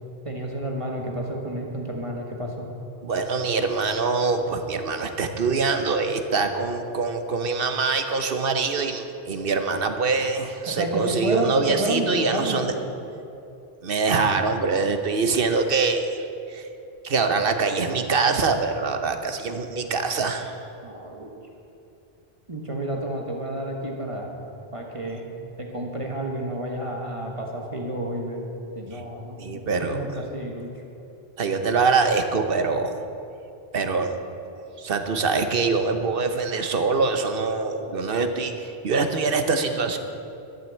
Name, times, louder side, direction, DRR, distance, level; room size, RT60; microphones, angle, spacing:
voice 1, 0.2-2.7 10.7-12.9 20.8-21.3 22.5-24.3 24.7-25.3 25.6-28.4 28.7-30.7, right 1 dB, 30° right, 0 dB, 1.4 m, -30 dB
voice 2, 3.0-12.7 13.8-16.2 16.5-16.7 17.0-20.5 28.9-29.0 29.4-30.0 31.4-32.9 33.7-34.2 34.8-40.0, right 4 dB, 60° right, 7 dB, 1.1 m, -24 dB
12.5 x 7.6 x 8.2 m, 2.7 s
omnidirectional pair, 1.1 m